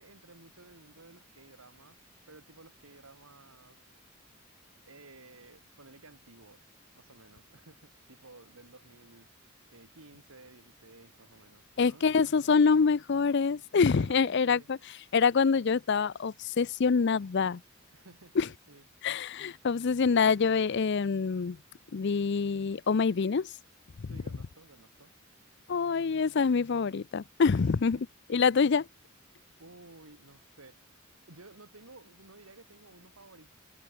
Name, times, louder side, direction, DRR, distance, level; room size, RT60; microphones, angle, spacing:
voice 1, 0.0-2.0 2.3-3.8 4.8-6.6 6.9-12.1 13.7-14.7 17.9-18.9 19.3-19.4 24.1-25.1 27.5-28.0 29.6-30.8 31.3-33.5, right 2 dB, 90° right, 3.0 m, -55 dB
voice 2, 11.8-14.8 15.1-17.6 18.4-18.5 19.0-21.6 21.9-23.5 24.0-24.1 25.7-28.0 28.3-28.9, left 5 dB, 55° left, 0.5 m, -26 dB
head